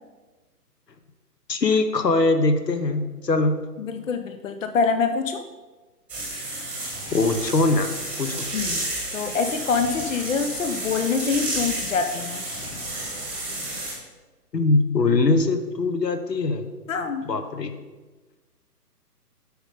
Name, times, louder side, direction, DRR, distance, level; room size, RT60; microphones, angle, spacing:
voice 1, 1.5-3.6 7.1-7.9 8.2-8.4 14.5-16.6 17.2-17.7, left 3 dB, 80° left, 8 dB, 1.0 m, -21 dB
voice 2, 3.8-5.4 8.5-8.9 9.1-12.4 16.9-17.3, left 5 dB, 55° left, 8 dB, 0.7 m, -25 dB
sound 1, 6.1-13.9, right 2 dB, 5° right, 1.1 m, -31 dB
8.2 x 5.4 x 4.9 m, 1.3 s
figure-of-eight pair, 140°, 48 cm